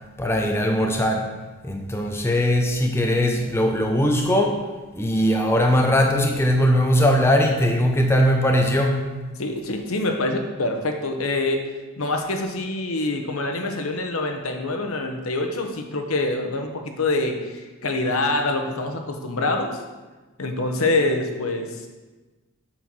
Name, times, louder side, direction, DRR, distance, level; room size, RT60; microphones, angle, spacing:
voice 1, 0.2-1.3 1.6-4.7 4.9-9.0, equal, 10° left, 2 dB, 0.6 m, -20 dB
voice 2, 9.4-11.7 12.0-19.8 20.4-21.9, left 2 dB, 75° left, 4 dB, 1.0 m, -25 dB
8.1 x 4.5 x 6.1 m, 1.2 s
head